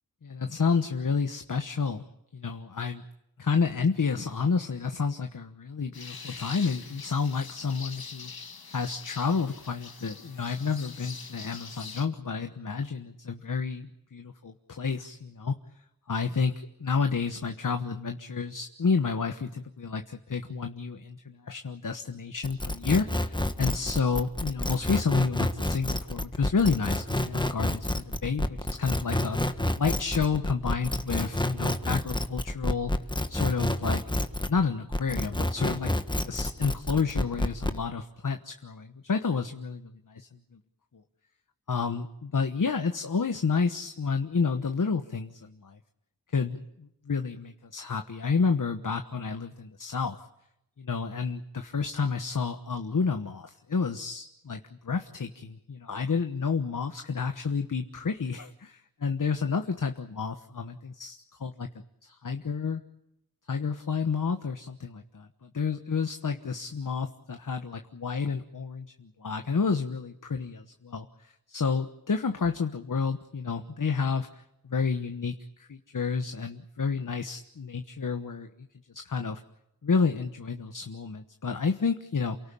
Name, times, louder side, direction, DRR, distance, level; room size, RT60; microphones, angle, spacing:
voice 1, 0.2-2.0 2.3-3.0 3.4-8.3 8.7-15.6 16.1-32.9 33.3-34.0 34.5-35.9 36.2-40.6 41.7-45.8 46.3-50.2 50.8-61.7 62.0-62.8 63.5-78.5 78.9-79.4 79.8-82.4, left 5 dB, 60° left, 7 dB, 1.2 m, -30 dB
sound 1, 5.9-12.1, left 5 dB, 85° left, 2.0 m, -44 dB
sound 2, 22.4-34.6 34.9-37.8, left 1 dB, 15° left, 1.5 m, -29 dB
29.0 x 18.0 x 8.5 m, 0.83 s
wide cardioid pair, 80°, 36 cm